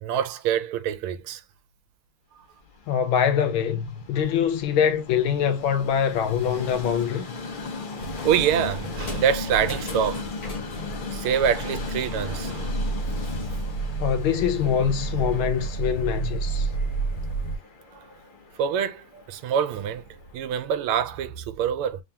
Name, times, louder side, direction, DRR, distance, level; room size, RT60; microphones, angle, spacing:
voice 1, 0.0-1.4 8.2-10.2 11.1-12.8 18.6-20.0 20.3-22.0, right 8 dB, 90° right, 1.5 m, -25 dB
Train, 2.6-20.7, left 4 dB, 60° left, 0.5 m, -38 dB
voice 2, 2.9-7.2 14.0-16.7, left 8 dB, 75° left, 1.5 m, -24 dB
sound 1, 8.0-17.6, right 3 dB, 45° left, 1.6 m, -31 dB
3.7 x 2.8 x 3.4 m
omnidirectional pair, 2.3 m